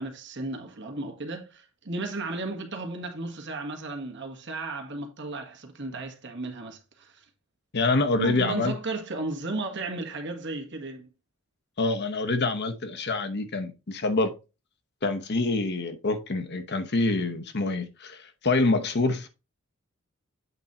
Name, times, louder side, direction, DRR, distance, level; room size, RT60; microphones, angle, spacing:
voice 1, 0.0-7.2 8.2-11.1, right 2 dB, 55° right, 1.7 m, -34 dB
voice 2, 7.7-8.7 11.8-14.3 15.0-19.3, left 3 dB, 50° left, 0.9 m, -26 dB
8.3 x 4.1 x 4.2 m
head